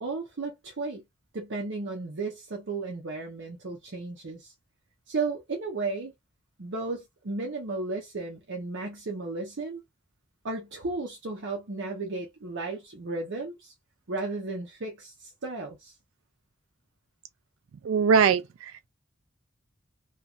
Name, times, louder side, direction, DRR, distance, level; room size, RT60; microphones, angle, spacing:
voice 1, 0.0-1.0 1.3-4.5 5.1-6.1 6.6-9.8 10.4-13.7 14.1-15.9, right 3 dB, 60° right, 0.7 m, -34 dB
voice 2, 17.8-18.9, right 6 dB, 80° right, 0.3 m, -22 dB
3.0 x 2.3 x 2.4 m
head